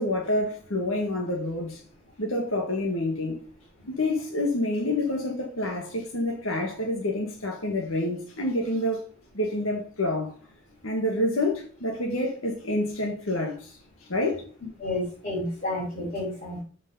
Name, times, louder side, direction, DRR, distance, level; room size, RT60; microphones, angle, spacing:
voice 1, 0.0-1.8 2.2-3.5 3.9-9.0 9.3-10.4 10.8-13.8 14.1-14.4, left 1 dB, 90° left, 1.7 m, -28 dB
voice 2, 14.8-16.6, left 1 dB, 40° left, 4.7 m, -30 dB
7.9 x 5.2 x 5.5 m
head